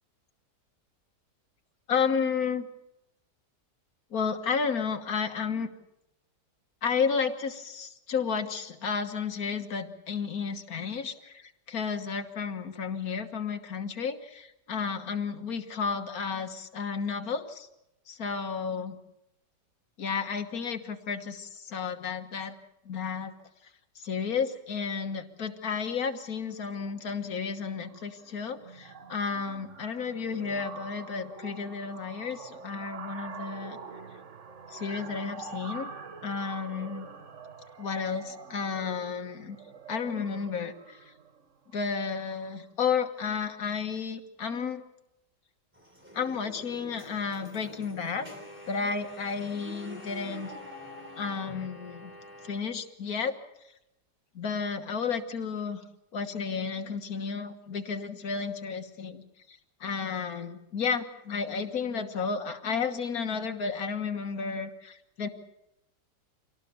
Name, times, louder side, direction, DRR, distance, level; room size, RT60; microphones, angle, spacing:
voice 1, 1.9-2.7 4.1-5.7 6.8-17.7 18.1-19.0 20.0-22.6 22.9-23.3 24.0-33.8 34.7-35.9 36.2-37.1 37.8-39.6 39.9-41.1 41.7-44.8 46.1-48.3 48.7-50.5 51.2-52.1 52.4-53.4 54.4-55.8 56.1-59.2 59.5-65.3, left 5 dB, 60° left, 6 dB, 1.9 m, -32 dB
sound 1, 26.6-26.9 27.2-27.5 27.8-42.6, right 5 dB, 50° right, 1.5 m, -46 dB
sound 2, 45.7-52.6, equal, 5° right, 3.8 m, -46 dB
25.5 x 18.0 x 7.0 m, 0.87 s
omnidirectional pair, 1.8 m